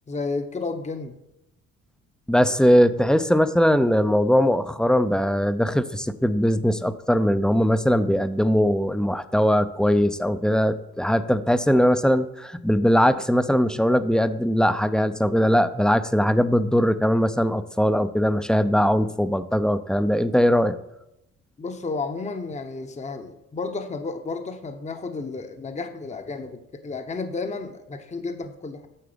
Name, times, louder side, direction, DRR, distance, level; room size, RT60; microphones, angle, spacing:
voice 1, 0.1-1.2 21.6-28.9, left 3 dB, 25° left, 7 dB, 0.9 m, -32 dB
voice 2, 2.3-20.8, equal, ahead, 12 dB, 0.5 m, -20 dB
9.8 x 6.8 x 5.1 m, 0.86 s
cardioid pair, 90°, 30 cm